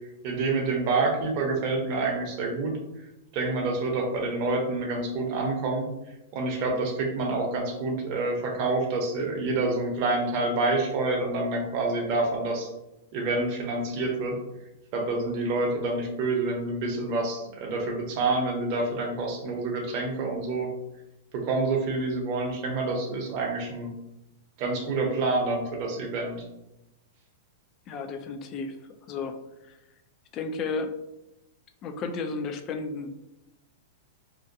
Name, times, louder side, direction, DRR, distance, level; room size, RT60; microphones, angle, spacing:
voice 1, 0.2-2.8 3.3-5.9 6.3-12.7 13.1-14.4 14.9-20.7 21.3-23.9 24.6-26.4, right 3 dB, 45° right, 0 dB, 0.7 m, -27 dB
voice 2, 27.9-28.8 29.1-29.4 29.6-29.8 30.3-31.0 31.8-33.2, left 4 dB, 30° left, 7 dB, 0.3 m, -33 dB
2.5 x 2.2 x 2.6 m, 0.91 s
hypercardioid pair, 140°, 0 cm